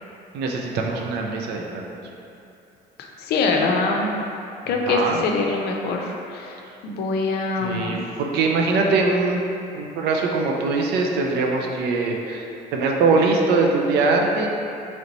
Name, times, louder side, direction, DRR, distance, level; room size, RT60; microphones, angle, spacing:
voice 1, 0.3-1.9 4.9-5.2 7.6-9.4 9.7-12.4 12.7-14.5, right 3 dB, 80° right, 1 dB, 0.5 m, -22 dB
voice 2, 3.0-4.1 4.7-6.6 6.8-8.1, left 3 dB, 75° left, 1 dB, 0.5 m, -24 dB
3.9 x 3.2 x 3.0 m, 2.6 s
cardioid pair, 110°, 17 cm